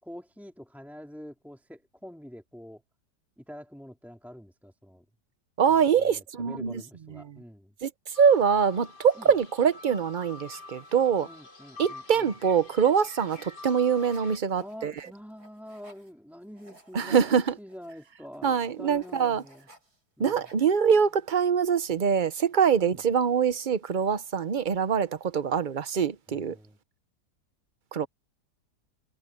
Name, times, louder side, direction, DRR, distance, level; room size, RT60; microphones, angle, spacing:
voice 1, 0.0-2.8 3.4-5.0 5.6-7.7 9.2-9.3 11.2-12.3 14.6-19.7 20.2-20.4 22.8-23.0 26.3-26.8, equal, ahead, 3.4 m, -46 dB
voice 2, 5.6-6.8 7.8-11.3 11.8-14.9 16.9-17.5 18.4-19.4 20.2-26.6 27.9-28.1, right 7 dB, 50° right, 0.6 m, -24 dB
sound 1, 8.1-14.4, left 3 dB, 85° left, 3.9 m, -47 dB
sound 2, 13.2-16.1 16.4-20.0 20.3-21.0, right 2 dB, 65° right, 6.3 m, -57 dB
omnidirectional pair, 1.8 m